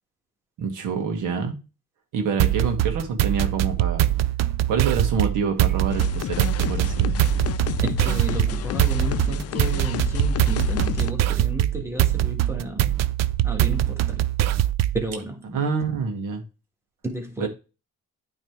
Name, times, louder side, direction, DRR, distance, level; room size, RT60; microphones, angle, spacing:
voice 1, 0.6-1.6 2.1-4.1 4.7-7.2 15.5-16.4 17.4-17.5, right 5 dB, 90° right, 1.5 m, -26 dB
sound 1, 2.4-15.1, right 13 dB, 60° right, 0.5 m, -23 dB
sound 2, 5.9-11.1, left 12 dB, 55° left, 0.5 m, -30 dB
voice 2, 7.8-12.9 13.4-14.3 14.9-15.6 17.0-17.5, right 2 dB, 10° right, 1.7 m, -32 dB
9.1 x 3.3 x 4.6 m
cardioid pair, 90°, 30 cm